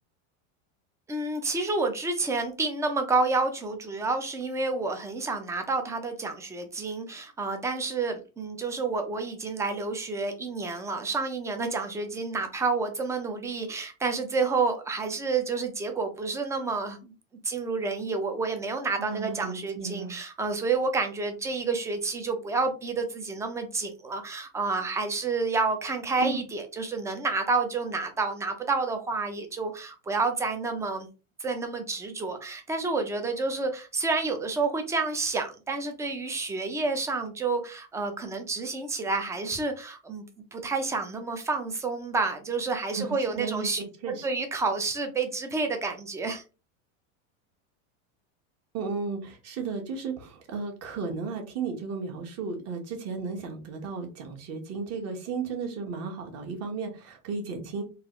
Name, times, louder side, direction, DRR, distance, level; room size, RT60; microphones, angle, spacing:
voice 1, 1.1-17.1 17.4-31.1 31.4-40.2 40.5-46.4, right 3 dB, 10° right, 6 dB, 0.4 m, -29 dB
voice 2, 19.0-20.1 26.2-26.4 42.9-44.3 48.7-57.8, right 5 dB, 40° right, 2 dB, 1.1 m, -34 dB
3.9 x 2.4 x 2.9 m, 0.31 s
supercardioid pair, 140°, 40 cm